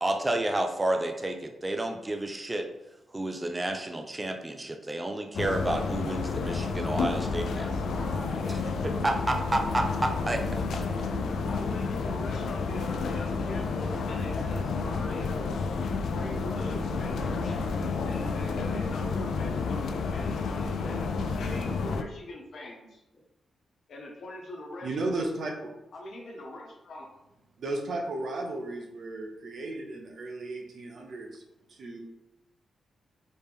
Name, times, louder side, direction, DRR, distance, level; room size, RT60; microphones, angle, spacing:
voice 1, 0.0-2.7 3.1-7.6 8.8-10.8, right 1 dB, 15° right, 4 dB, 0.4 m, -30 dB
sound 1, 5.3-22.0, left 4 dB, 80° left, 0.4 m, -30 dB
voice 2, 7.5-8.6 11.4-15.4 16.1-23.0 23.9-25.2 25.9-27.1, left 1 dB, 60° left, -1 dB, 1.0 m, -42 dB
voice 3, 24.8-25.7 27.6-31.4 31.7-32.0, right 2 dB, 60° right, 1 dB, 0.8 m, -34 dB
4.2 x 3.3 x 3.5 m, 0.89 s
wide cardioid pair, 130°, 0 cm